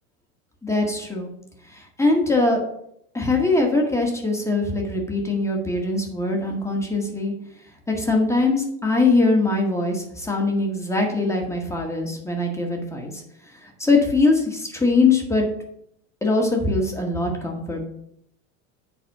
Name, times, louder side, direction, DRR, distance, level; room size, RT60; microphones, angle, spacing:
voice 1, 0.6-1.3 1.7-2.6 3.1-7.3 7.9-13.2 13.6-15.4 16.2-17.9, left 3 dB, 5° left, 0 dB, 1.8 m, -22 dB
7.8 x 4.1 x 6.6 m, 0.74 s
supercardioid pair, 115°, 40 cm